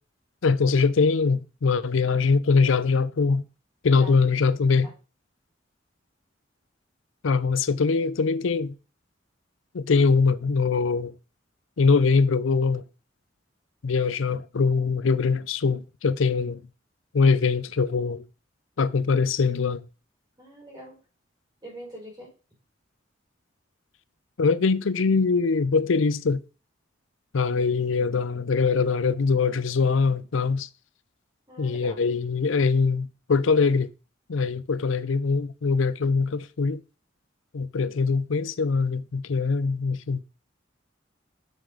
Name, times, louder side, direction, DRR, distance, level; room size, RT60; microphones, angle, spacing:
voice 1, 0.4-3.4 3.8-4.9 7.2-8.7 9.7-11.1 11.8-12.8 13.8-16.6 17.1-18.2 18.8-19.8 24.4-26.4 27.3-30.7 31.6-33.9 34.3-36.8 37.5-40.2, left 4 dB, 85° left, 0.5 m, -22 dB
voice 2, 3.9-4.2 4.7-4.9 20.4-21.0 21.6-22.3 27.5-27.6 27.9-28.0 31.5-32.0, right 1 dB, 20° right, 4.7 m, -43 dB
7.9 x 6.7 x 3.9 m
head